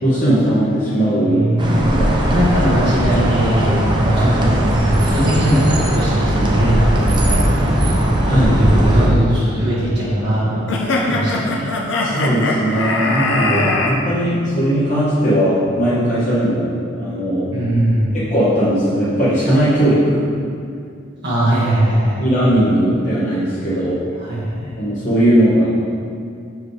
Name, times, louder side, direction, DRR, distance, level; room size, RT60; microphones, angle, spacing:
voice 1, 0.0-2.1 8.3-8.6 12.0-16.7 17.0-17.5 18.1-20.3 22.2-24.0 24.8-25.7, equal, 35° left, -10 dB, 1.1 m, -18 dB
voice 2, 1.2-1.9 2.3-4.5 5.1-8.0 8.6-10.6 11.0-11.7 13.2-14.1 17.5-18.1 21.2-22.2 24.2-24.7, right 1 dB, 55° right, -9 dB, 1.3 m, -20 dB
sound 1, 1.6-9.1, right 1 dB, 20° right, 0.5 m, -17 dB
sound 2, 10.7-13.9, left 2 dB, 65° left, 0.6 m, -20 dB
6.2 x 4.8 x 3.2 m, 2.4 s
head